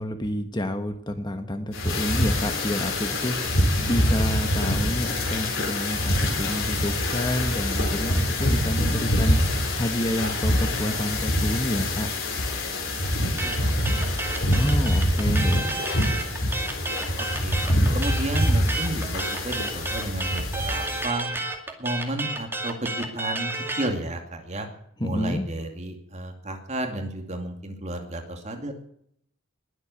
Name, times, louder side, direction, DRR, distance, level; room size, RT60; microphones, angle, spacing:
voice 1, 0.0-3.4 3.9-9.4 9.8-12.1 14.5-15.7 25.0-25.4, left 1 dB, 20° left, 7 dB, 1.2 m, -29 dB
sound 1, 1.7-21.1, left 1 dB, 65° left, 4.6 m, -25 dB
voice 2, 8.8-9.2 13.4-14.2 17.2-17.6 17.9-21.3 21.8-24.7 25.0-28.7, right 1 dB, 35° right, 4 dB, 2.5 m, -32 dB
sound 2, 13.4-23.9, right 2 dB, 10° right, 2.3 m, -31 dB
21.0 x 8.1 x 8.4 m, 0.69 s
head